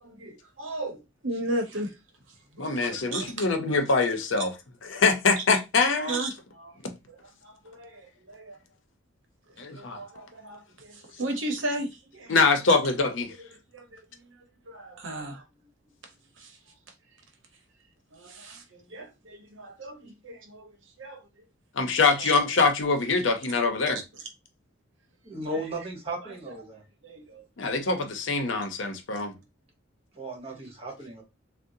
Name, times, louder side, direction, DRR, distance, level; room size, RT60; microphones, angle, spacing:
voice 1, 0.0-1.9 2.5-3.8 6.1-6.8 7.4-8.6 9.7-12.4 13.7-14.0 14.3-14.4 14.7-15.4 16.4-16.6 18.1-21.3 22.2-22.4 23.8-24.0 25.5-25.6 26.2-26.3 27.0-27.4 30.5-30.7, right 1 dB, 70° right, 0.8 m, -36 dB
voice 2, 2.6-4.5 4.9-6.2 9.6-10.0 12.3-13.3 21.7-24.0 27.6-29.4, left 4 dB, 70° left, 0.6 m, -24 dB
voice 3, 25.2-26.8 30.1-31.2, right 1 dB, 30° right, 1.2 m, -36 dB
3.6 x 2.0 x 2.6 m
head